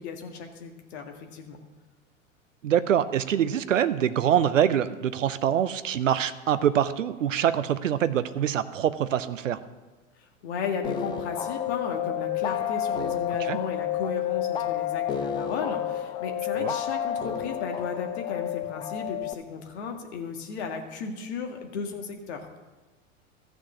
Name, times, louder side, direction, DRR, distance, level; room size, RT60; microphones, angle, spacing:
voice 1, 0.0-1.6 10.2-22.5, left 5 dB, 55° left, 4 dB, 1.8 m, -35 dB
voice 2, 2.6-9.6 13.5-13.6 16.6-16.7, right 9 dB, 75° right, 14 dB, 0.8 m, -24 dB
sound 1, 10.8-19.3, left 10 dB, 15° left, 0.3 m, -30 dB
14.0 x 6.5 x 7.0 m, 1.2 s
figure-of-eight pair, 90°, 39 cm